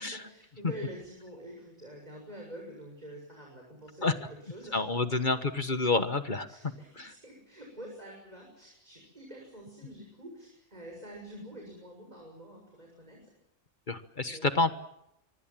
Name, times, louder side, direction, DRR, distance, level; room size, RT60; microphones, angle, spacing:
voice 1, 0.1-4.8 5.1-5.2 6.5-13.3 14.2-14.5, right 1 dB, 35° right, 0 dB, 7.1 m, -47 dB
voice 2, 4.7-6.5 7.0-7.1 13.9-14.7, left 3 dB, 40° left, 10 dB, 1.4 m, -28 dB
25.0 x 24.5 x 7.5 m, 0.80 s
omnidirectional pair, 1.2 m